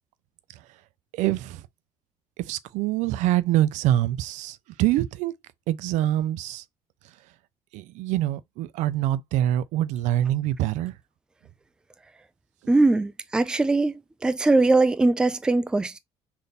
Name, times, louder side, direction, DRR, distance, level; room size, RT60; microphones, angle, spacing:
voice 1, 1.1-1.6 2.4-5.3 5.7-6.6 7.7-10.9, right 13 dB, 80° right, 0.4 m, -25 dB
voice 2, 12.7-13.9 14.2-16.0, right 2 dB, 5° right, 0.3 m, -21 dB
3.4 x 2.6 x 4.0 m
cardioid pair, 140°, 12 cm